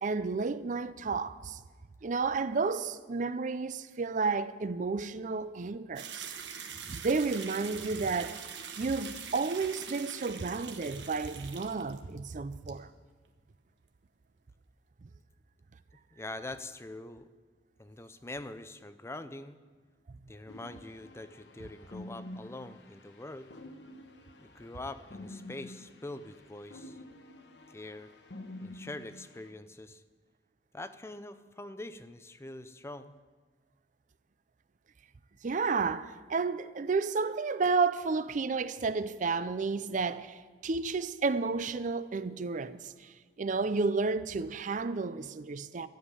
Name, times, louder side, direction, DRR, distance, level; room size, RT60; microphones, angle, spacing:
voice 1, 0.0-1.6 2.0-6.3 6.9-8.4 8.8-12.9 35.4-45.9, right 4 dB, 45° right, 0.5 m, -31 dB
sound 1, 6.0-12.3 12.5-12.7, right 7 dB, 80° right, 1.2 m, -43 dB
voice 2, 16.1-17.3 17.8-19.6 20.3-23.5 24.4-27.0 27.7-28.1 28.6-30.0 30.7-33.1, left 2 dB, 15° left, 0.5 m, -44 dB
sound 2, 20.5-29.5, left 1 dB, 70° left, 1.2 m, -49 dB
13.0 x 7.3 x 9.7 m
head